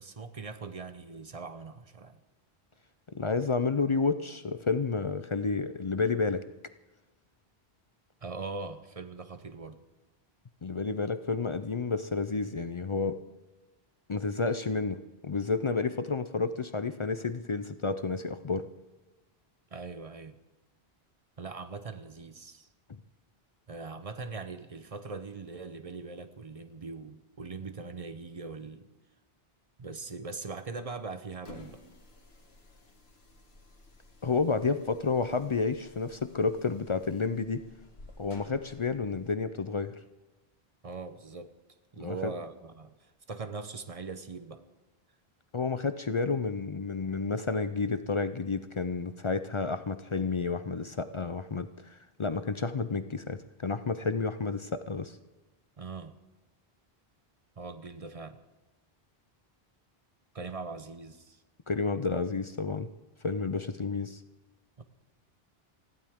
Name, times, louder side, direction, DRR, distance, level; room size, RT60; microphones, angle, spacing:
voice 1, 0.0-2.2 8.2-9.8 19.7-20.4 21.4-22.7 23.7-28.9 29.8-31.8 40.8-41.5 41.9-44.6 55.8-56.2 57.6-58.4 60.3-61.4 64.8-64.9, right 4 dB, 40° right, 10 dB, 0.8 m, -41 dB
voice 2, 3.1-6.4 10.6-13.2 14.1-18.7 34.2-37.6 38.2-40.0 42.0-42.3 45.5-55.2 61.7-62.9 63.2-64.2, left 4 dB, 40° left, 11 dB, 0.5 m, -30 dB
sound 1, 31.3-39.4, left 1 dB, 75° left, 1.8 m, -54 dB
20.0 x 15.0 x 3.6 m, 1.1 s
omnidirectional pair, 1.0 m